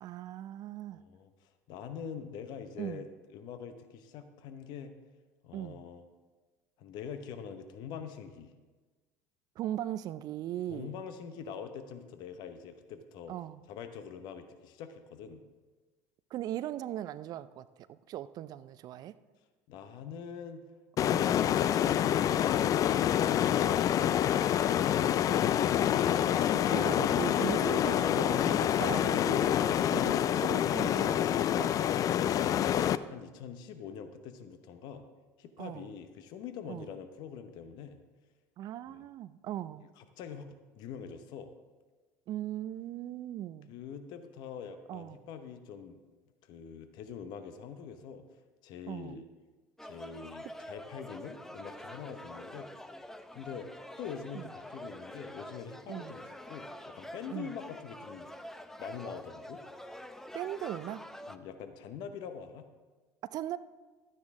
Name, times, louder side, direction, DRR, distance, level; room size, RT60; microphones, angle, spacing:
voice 1, 0.0-1.0 2.8-3.1 5.5-5.8 9.6-10.9 13.3-13.6 16.3-19.2 21.0-21.3 26.7-31.7 35.6-35.9 36.7-36.9 38.6-39.8 42.3-43.7 44.9-45.2 48.9-49.2 54.3-54.5 55.9-56.2 57.3-57.6 60.3-61.1 63.2-63.6, right 12 dB, 50° right, 15 dB, 0.4 m, -39 dB
voice 2, 1.0-3.1 3.3-5.0 5.4-6.0 6.8-8.5 10.7-13.3 13.7-15.4 19.7-20.6 33.1-35.1 35.4-38.0 38.9-39.0 40.0-41.5 43.7-46.0 46.4-48.2 48.6-49.2 49.8-52.7 53.3-53.7 54.0-58.3 58.8-59.6 61.3-62.7, left 7 dB, 60° left, 8 dB, 0.9 m, -44 dB
sound 1, 21.0-33.0, left 10 dB, 45° left, 0.4 m, -27 dB
sound 2, 49.8-61.4, left 1 dB, 5° left, 0.6 m, -46 dB
12.5 x 9.4 x 3.7 m, 1.3 s
hypercardioid pair, 75°, 8 cm